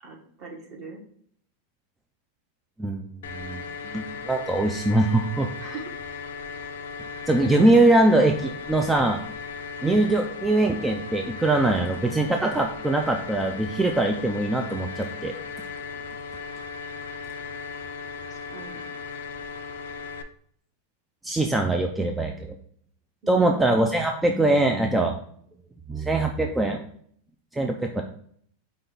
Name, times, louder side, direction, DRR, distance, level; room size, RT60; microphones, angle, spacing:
voice 1, 0.0-1.0 5.6-5.9 15.9-16.0 18.3-18.8 23.2-23.7, right 3 dB, 40° right, 2 dB, 1.1 m, -41 dB
voice 2, 2.8-3.6 3.9-5.5 7.3-9.2 9.8-15.3 21.2-22.5 23.3-25.2 25.9-26.8 27.5-28.0, right 2 dB, 10° right, 3 dB, 0.3 m, -22 dB
sound 1, 3.2-20.2, left 5 dB, 85° left, 0.4 m, -37 dB
5.3 x 2.3 x 3.8 m, 0.63 s
supercardioid pair, 140°, 0 cm